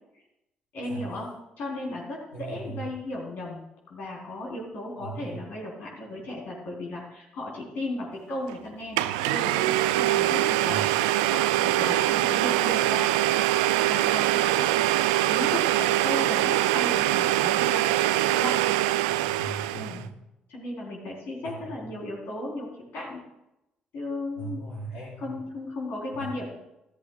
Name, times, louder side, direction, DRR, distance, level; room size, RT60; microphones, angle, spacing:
voice 1, 0.7-1.3 1.6-3.6 3.9-13.3 13.8-14.7 15.3-18.0 18.3-18.6 19.8-20.0 20.5-23.2 23.9-24.6 25.2-26.4, left 1 dB, 55° left, -2 dB, 3.7 m, -35 dB
voice 2, 2.3-2.8 5.0-5.4 10.7-10.8 19.1-20.1 21.4-21.7 24.3-25.3 26.1-26.3, right 3 dB, 80° left, -14 dB, 4.9 m, -39 dB
Domestic sounds home sounds, 8.5-8.6 9.0-20.0, right 15 dB, 70° right, 0.4 m, -23 dB
14.0 x 13.5 x 2.3 m, 0.87 s
figure-of-eight pair, 45°, 4 cm